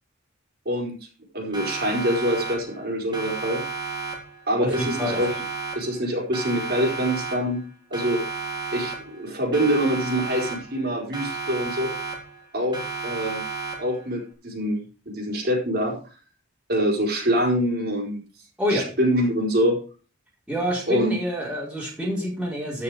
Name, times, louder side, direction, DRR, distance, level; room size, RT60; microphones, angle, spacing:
voice 1, 1.3-3.6 4.5-5.3 5.7-7.6 7.9-8.2 8.7-11.9 12.5-13.4 13.8-16.0 16.7-18.2 18.7-19.8 20.9-21.1, equal, 50° right, -1 dB, 4.5 m, -25 dB
Siren, 1.5-2.9 3.1-4.5 4.7-6.1 6.3-7.7 7.9-9.3 9.5-10.9 11.1-12.5 12.7-14.1, right 4 dB, 20° right, 4.1 m, -33 dB
voice 2, 4.6-5.2 18.6-18.9 20.5-22.8, equal, 5° right, -5 dB, 4.7 m, -27 dB
14.5 x 6.8 x 5.0 m, 0.36 s
head